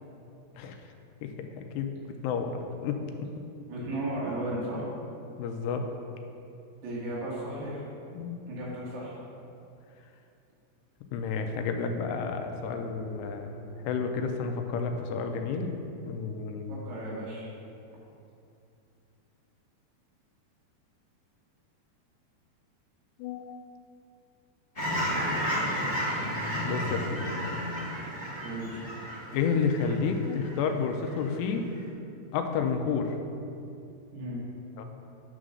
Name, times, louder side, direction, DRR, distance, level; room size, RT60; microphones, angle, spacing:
voice 1, 1.2-1.9 2.2-2.6 2.8-3.0 5.4-5.8 8.1-8.4 11.1-15.8 16.1-16.8 23.2-23.6 26.6-27.2 29.3-31.7 32.3-33.2 34.8-34.9, left 5 dB, 85° left, 5 dB, 2.7 m, -30 dB
voice 2, 3.7-4.9 6.8-7.8 8.5-9.2 16.7-17.5 28.4-28.8 34.1-34.5, right 1 dB, 75° right, -6 dB, 3.8 m, -35 dB
Fowl / Chirp tweet, 24.7-30.6 31.0-31.2, equal, 55° left, 0.4 m, -32 dB
9.9 x 3.9 x 6.2 m, 2.6 s
omnidirectional pair, 4.8 m